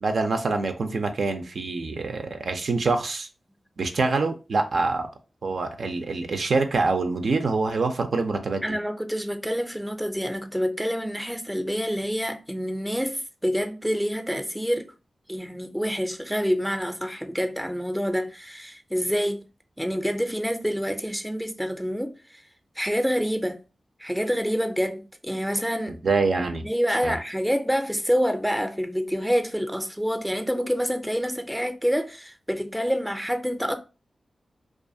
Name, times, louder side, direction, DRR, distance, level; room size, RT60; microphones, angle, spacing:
voice 1, 0.0-3.3 3.8-5.1 5.4-8.7 26.0-26.7 27.0-27.2, right 3 dB, 75° right, 0.4 m, -25 dB
voice 2, 8.6-14.9 15.3-19.4 19.8-22.1 22.8-23.6 24.0-26.0 26.6-33.7, equal, ahead, 0.4 m, -27 dB
2.4 x 2.3 x 2.6 m
cardioid pair, 55°, 0 cm